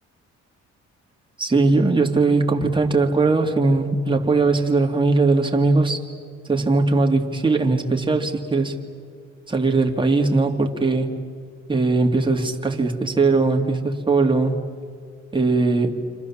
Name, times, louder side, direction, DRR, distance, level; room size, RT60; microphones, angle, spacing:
voice 1, 1.4-6.0 6.4-8.8 9.5-11.1 11.7-14.6 15.3-16.0, right 3 dB, 15° right, 3 dB, 2.4 m, -20 dB
29.5 x 26.5 x 7.3 m, 2.1 s
cardioid pair, 90°, 30 cm